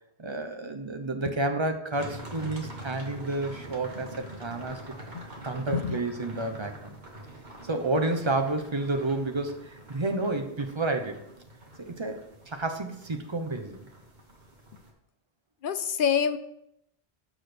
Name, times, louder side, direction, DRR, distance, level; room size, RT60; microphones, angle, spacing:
voice 1, 0.2-4.8 5.4-6.9 7.6-11.2 11.8-13.8, right 2 dB, 30° right, 5 dB, 0.7 m, -30 dB
sound 1, 1.9-14.9, right 1 dB, 45° right, 1.6 m, -45 dB
voice 2, 15.6-16.4, left 7 dB, 60° left, 11 dB, 0.6 m, -26 dB
6.3 x 6.2 x 5.1 m, 0.78 s
omnidirectional pair, 1.1 m